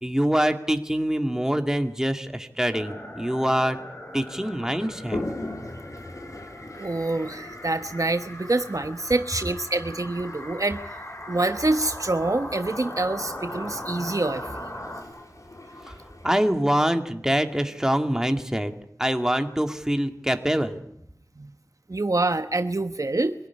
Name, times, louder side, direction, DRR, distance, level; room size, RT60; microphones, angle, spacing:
voice 1, 0.0-3.8 4.1-5.2 15.9-16.0 16.2-18.7 19.0-20.8, equal, 10° right, 6 dB, 2.3 m, -24 dB
sound 1, 2.7-15.0, left 1 dB, 45° left, 5.8 m, -39 dB
Toilet flush, 5.0-16.5, left 1 dB, 60° left, 3.8 m, -41 dB
voice 2, 6.8-11.0 11.3-14.7 21.4-21.5 21.9-23.3, right 2 dB, 60° right, 9 dB, 1.1 m, -26 dB
24.5 x 17.5 x 9.9 m, 0.74 s
wide cardioid pair, 40°, 6 cm